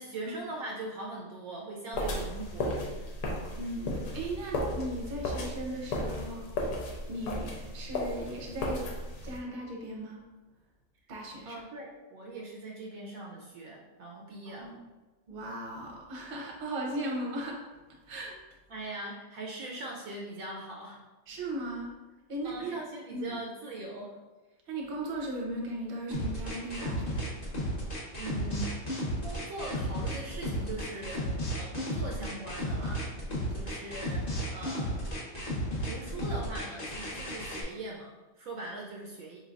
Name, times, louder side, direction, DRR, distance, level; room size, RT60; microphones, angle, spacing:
voice 1, 0.0-3.1 11.5-14.7 18.7-21.0 22.4-24.2 28.2-28.9 29.2-33.2 33.5-35.2 35.8-39.4, right 2 dB, 70° right, -1 dB, 0.9 m, -41 dB
sound 1, 1.9-9.4, left 1 dB, 85° left, 1.2 m, -35 dB
voice 2, 3.6-6.5 7.1-8.9 9.2-10.2 11.1-11.6 14.5-14.8 15.3-17.6 18.1-18.4 21.3-21.9 22.3-22.8 23.1-23.4 24.7-27.3, right 1 dB, 45° right, -1 dB, 0.8 m, -37 dB
sound 2, 26.1-37.6, equal, 35° left, 0.8 m, -33 dB
4.4 x 3.2 x 2.4 m, 1.2 s
omnidirectional pair, 1.6 m